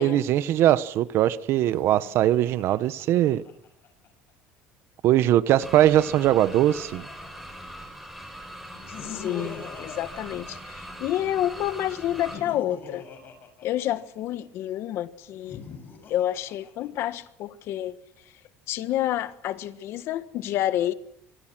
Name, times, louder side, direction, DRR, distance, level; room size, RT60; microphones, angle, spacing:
voice 1, 0.0-3.4 5.0-7.1, right 12 dB, 55° right, 1.2 m, -21 dB
Laughter, 1.5-4.1 5.4-7.8 8.6-11.2 12.0-14.4 15.3-17.2, left 5 dB, 40° left, 7.1 m, -44 dB
sound 1, 5.6-12.4, equal, ahead, 7.3 m, -41 dB
voice 2, 9.0-13.0 13.6-15.6 16.1-18.0 18.7-20.9, left 12 dB, 60° left, 1.5 m, -29 dB
25.5 x 25.5 x 6.2 m
cardioid pair, 145°, 5 cm